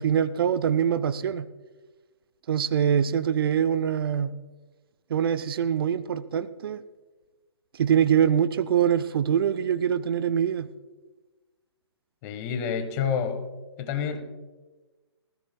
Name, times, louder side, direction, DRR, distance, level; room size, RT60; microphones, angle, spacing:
voice 1, 0.0-1.5 2.5-4.3 5.1-6.8 7.7-10.7, right 8 dB, 55° right, 13 dB, 0.6 m, -24 dB
voice 2, 12.2-13.4 13.8-14.2, left 7 dB, 30° left, 8 dB, 1.5 m, -28 dB
19.0 x 15.5 x 2.3 m, 1.2 s
hypercardioid pair, 135°, 14 cm